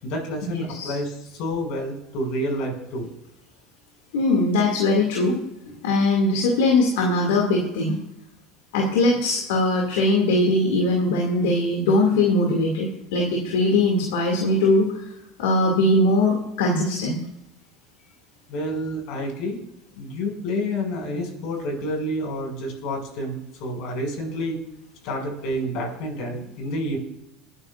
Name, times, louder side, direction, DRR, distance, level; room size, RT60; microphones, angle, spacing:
voice 1, 0.0-3.1 18.5-19.6 20.0-24.6 25.0-27.0, equal, 65° left, 1 dB, 6.3 m, -29 dB
voice 2, 4.1-5.4 5.8-8.0 8.7-14.9 15.4-17.2, left 2 dB, 80° left, 0 dB, 2.4 m, -21 dB
27.5 x 9.8 x 2.5 m, 0.85 s
supercardioid pair, 95°, 0 cm